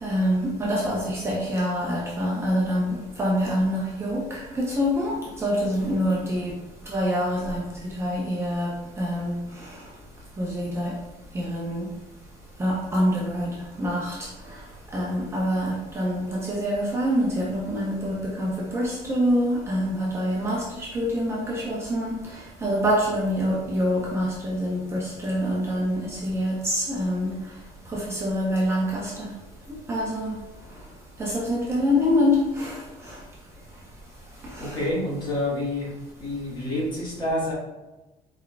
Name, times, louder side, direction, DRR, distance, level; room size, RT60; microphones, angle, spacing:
voice 1, 0.0-6.5 6.9-7.6 8.0-9.7 10.4-10.9 11.3-11.9 12.6-13.5 13.8-14.1 14.9-27.3 27.9-29.3 29.9-30.3 31.2-33.1 34.5-34.8, equal, 15° right, -5 dB, 0.7 m, -26 dB
voice 2, 34.6-35.9 36.2-37.5, left 1 dB, 30° left, -6 dB, 1.5 m, -28 dB
4.6 x 4.3 x 2.3 m, 1.1 s
cardioid pair, 165°, 15 cm